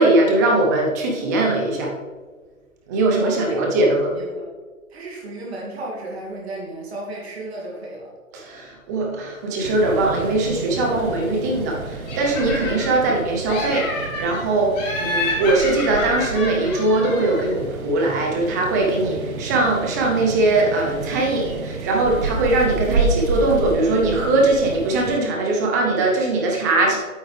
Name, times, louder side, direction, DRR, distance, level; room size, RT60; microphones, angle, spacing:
voice 1, 0.0-1.9 2.9-4.1 8.3-27.0, right 2 dB, 15° right, 0 dB, 0.7 m, -20 dB
voice 2, 3.2-4.5 4.9-8.1, right 1 dB, 45° right, -3 dB, 2.3 m, -33 dB
sound 1, 9.6-25.2, right 4 dB, 80° right, 1.1 m, -30 dB
Laughter, 12.1-13.1 13.4-14.4 14.7-17.5, left 2 dB, 30° left, 2.3 m, -29 dB
8.8 x 7.9 x 3.3 m, 1.4 s
hypercardioid pair, 150°, 42 cm